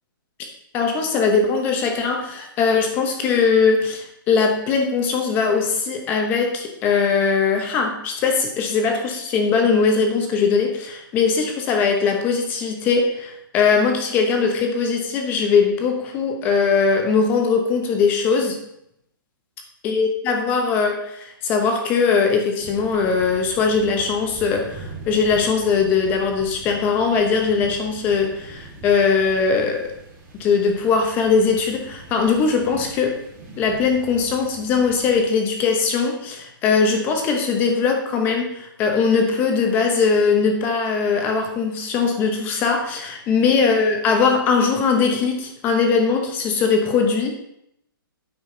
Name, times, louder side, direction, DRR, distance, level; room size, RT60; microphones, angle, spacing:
voice 1, 0.7-18.6 19.8-29.9 30.4-33.2 33.6-47.3, left 5 dB, 15° left, 3 dB, 0.9 m, -20 dB
sound 1, 22.6-35.2, right 2 dB, 10° right, 1.9 m, -41 dB
9.3 x 6.2 x 3.8 m, 0.77 s
hypercardioid pair, 170°, 12 cm